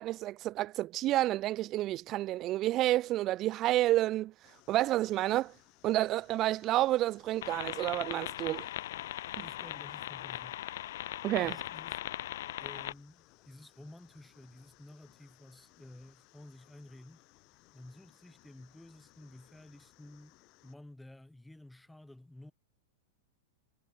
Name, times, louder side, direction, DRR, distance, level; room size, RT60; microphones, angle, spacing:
voice 1, 0.0-4.3 4.7-5.5 5.8-8.7 11.2-11.5, right 15 dB, 35° right, 0.4 m, -29 dB
sound 1, 4.4-20.8, left 24 dB, 45° left, 7.1 m, -64 dB
sound 2, 7.4-12.9, left 13 dB, 70° left, 3.4 m, -39 dB
voice 2, 9.4-10.6 11.4-12.0 12.6-17.2 17.7-22.5, left 1 dB, 5° left, 7.9 m, -53 dB
hypercardioid pair, 120°, 0 cm